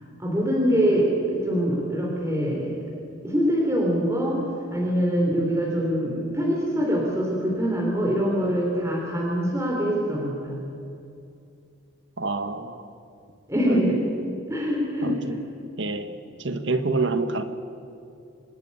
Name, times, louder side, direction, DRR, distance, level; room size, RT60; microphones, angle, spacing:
voice 1, 0.2-2.7 3.2-4.4 4.7-10.6 13.5-14.0 14.5-15.2, equal, 15° right, -3 dB, 3.4 m, -24 dB
voice 2, 12.2-12.8 15.0-15.4 15.8-16.1 16.4-17.4, right 3 dB, 60° right, 9 dB, 1.5 m, -27 dB
26.5 x 13.0 x 9.7 m, 2.6 s
head